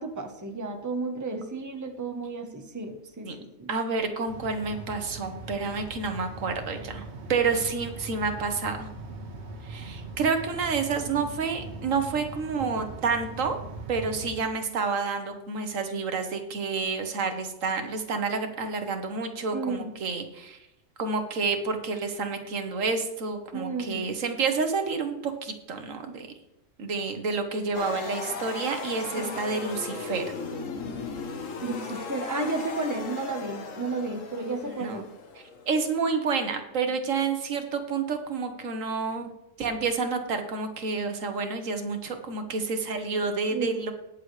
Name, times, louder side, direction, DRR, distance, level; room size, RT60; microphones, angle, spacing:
voice 1, 0.0-3.7 19.5-19.9 23.5-24.1 29.2-29.3 31.6-35.0 43.5-43.8, right 3 dB, 15° right, 5 dB, 1.0 m, -32 dB
voice 2, 3.7-8.9 9.6-13.6 13.9-20.6 21.0-26.3 26.8-30.2 34.8-35.0 35.7-39.3 39.6-43.9, right 4 dB, 85° right, 6 dB, 1.5 m, -29 dB
sound 1, 4.3-14.3, right 2 dB, 60° right, 1.6 m, -41 dB
sound 2, 27.7-35.9, left 4 dB, 80° left, 1.4 m, -37 dB
19.5 x 6.8 x 3.2 m, 0.87 s
omnidirectional pair, 1.3 m